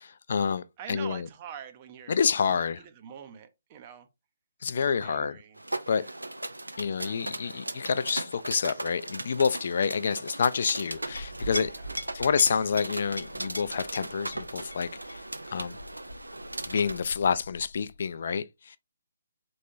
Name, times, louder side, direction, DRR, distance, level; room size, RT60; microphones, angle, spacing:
voice 1, 0.0-1.3 2.1-2.8 4.6-5.4 5.9-6.0 6.8-11.7 12.1-15.2 15.5-15.8 16.7-18.8, left 6 dB, 50° left, 0.4 m, -28 dB
voice 2, 0.8-2.2 2.4-4.1 4.7-5.6 5.9-6.1 6.8-7.6 11.6-11.9, right 8 dB, 30° right, 0.6 m, -46 dB
sound 1, 5.6-17.0, right 2 dB, 80° right, 0.5 m, -38 dB
Chink clink, 10.9-18.0, equal, 85° left, 0.7 m, -42 dB
4.2 x 3.1 x 2.6 m
figure-of-eight pair, 135°, 0 cm